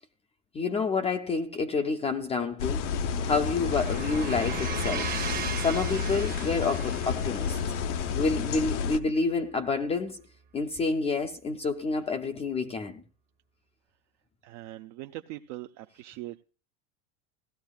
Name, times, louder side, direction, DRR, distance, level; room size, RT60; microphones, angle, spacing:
voice 1, 0.5-2.9 3.2-5.2 5.6-7.6 8.2-10.2 10.5-13.0, left 4 dB, 20° left, 0.4 m, -28 dB
sound 1, 2.3-10.5, right 8 dB, 25° right, 0.8 m, -40 dB
sound 2, 2.6-9.0, left 6 dB, 90° left, 0.9 m, -30 dB
voice 2, 14.4-16.4, right 16 dB, 60° right, 0.6 m, -41 dB
16.5 x 12.5 x 2.3 m
supercardioid pair, 145°, 34 cm